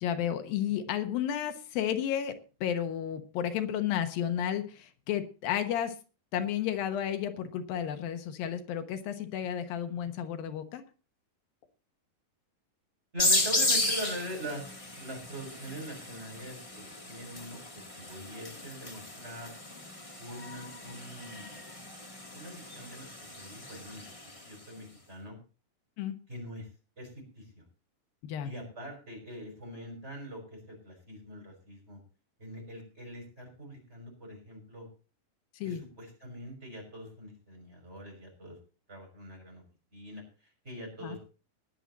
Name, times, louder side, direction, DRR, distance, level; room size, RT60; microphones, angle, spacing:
voice 1, 0.0-2.4 2.6-5.9 6.3-10.8 26.0-26.2 28.2-28.5 35.5-35.8 41.0-41.2, left 9 dB, 85° left, 8 dB, 2.9 m, -32 dB
voice 2, 13.1-17.6 17.9-19.5 20.2-21.6 22.3-23.1 23.3-24.0 24.4-25.4 26.3-26.7 27.0-27.6 28.4-32.0 32.4-34.9 35.6-38.6 38.9-39.6 39.9-41.2, equal, 15° right, 1 dB, 6.3 m, -43 dB
sound 1, 13.2-24.5, left 2 dB, 20° left, 0.9 m, -34 dB
21.0 x 7.5 x 4.1 m, 0.35 s
omnidirectional pair, 4.0 m